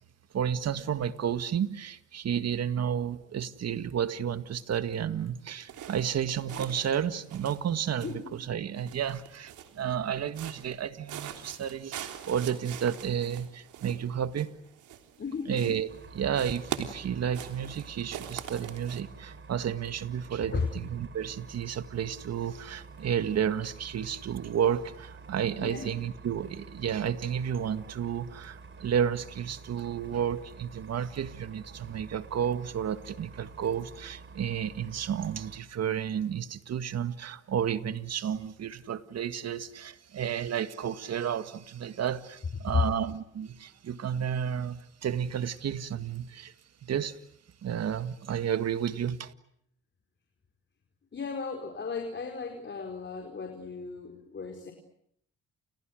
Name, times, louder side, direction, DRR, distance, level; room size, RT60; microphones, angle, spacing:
voice 1, 0.3-14.5 15.5-46.5 46.8-47.2 47.6-49.3, right 8 dB, 60° right, 11 dB, 1.9 m, -32 dB
sound 1, 5.7-7.0 7.2-8.4 8.8-9.9 10.3-10.8 11.1-15.3 15.5-16.0 16.3-19.0, right 10 dB, 80° right, 3.6 m, -42 dB
voice 2, 8.0-8.4 15.2-15.8 20.5-20.7 25.5-25.9 42.7-42.8 51.1-54.7, left 5 dB, 40° left, 5 dB, 4.7 m, -34 dB
sound 2, 15.9-35.6, right 4 dB, 40° right, 4.0 m, -49 dB
30.0 x 29.5 x 6.5 m, 0.70 s
cardioid pair, 90°, 30 cm